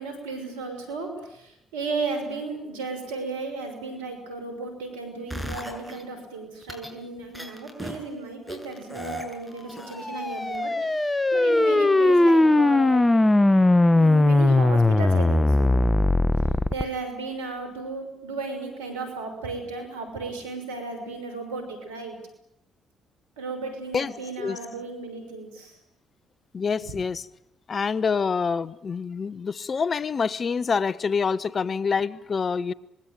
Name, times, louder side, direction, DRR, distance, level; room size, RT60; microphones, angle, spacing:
voice 1, 0.0-13.1 13.9-15.7 16.7-22.2 23.4-25.8 26.8-27.0, right 3 dB, 90° right, 6.0 m, -34 dB
sound 1, 5.3-6.0 6.6-6.9 7.3-8.0 8.5-10.2 10.5-10.6, equal, ahead, 7.6 m, -36 dB
sound 2, 9.9-16.8, left 2 dB, 20° left, 1.4 m, -19 dB
voice 2, 26.5-27.2 27.7-32.7, left 5 dB, 45° left, 1.2 m, -26 dB
25.5 x 21.5 x 9.2 m
hypercardioid pair, 50°, 0 cm